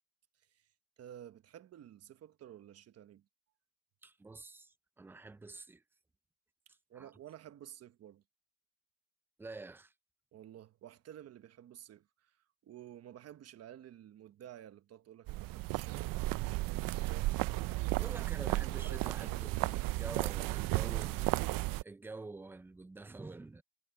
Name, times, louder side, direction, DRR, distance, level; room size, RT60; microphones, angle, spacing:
voice 1, 1.0-3.2 6.9-8.2 10.3-12.4 12.6-17.5 17.8-18.2 18.8-19.4, right 11 dB, 45° right, 1.1 m, -52 dB
voice 2, 4.0-5.8 6.9-7.1 9.4-9.9 18.0-21.4 21.8-23.6, right 3 dB, 5° right, 0.3 m, -48 dB
sound 1, 15.3-21.8, right 19 dB, 75° right, 0.5 m, -34 dB
cardioid pair, 165°, 34 cm